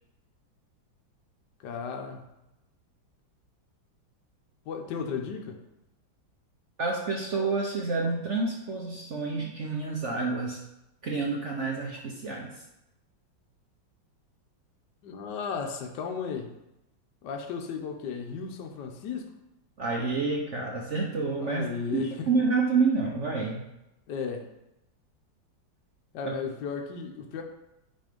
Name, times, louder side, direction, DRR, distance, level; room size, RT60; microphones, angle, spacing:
voice 1, 1.6-2.2 4.7-5.6 15.0-16.5 17.2-19.3 21.4-22.4 24.1-24.4 26.1-27.4, left 6 dB, 70° left, 3 dB, 1.3 m, -35 dB
voice 2, 6.8-10.6 11.0-12.5 19.8-21.7 21.9-23.6 26.2-26.3, right 4 dB, 50° right, -1 dB, 0.9 m, -28 dB
9.1 x 3.2 x 5.1 m, 0.91 s
omnidirectional pair, 2.1 m